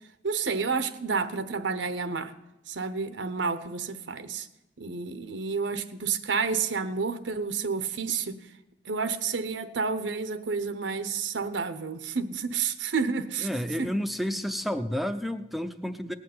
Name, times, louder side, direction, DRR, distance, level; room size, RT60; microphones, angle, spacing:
voice 1, 0.2-2.3 2.7-4.5 4.8-8.4 8.9-13.5 13.8-13.9, right 5 dB, 85° right, 12 dB, 0.9 m, -30 dB
voice 2, 13.4-16.1, equal, ahead, 10 dB, 0.6 m, -30 dB
18.0 x 6.4 x 9.4 m, 0.91 s
head